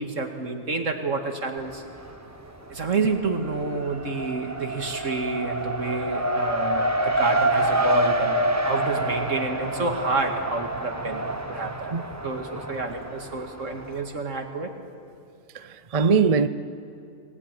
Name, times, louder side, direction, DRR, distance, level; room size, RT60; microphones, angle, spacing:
voice 1, 0.0-1.8 2.7-8.4 8.6-12.0 12.2-14.7, right 3 dB, 65° right, 2.4 m, -29 dB
Race car auto racing, 1.6-2.3 2.6-14.0, right 1 dB, 10° right, 1.3 m, -27 dB
voice 2, 15.5-16.5, right 5 dB, 40° right, 0.6 m, -21 dB
28.0 x 19.5 x 9.1 m
omnidirectional pair, 1.4 m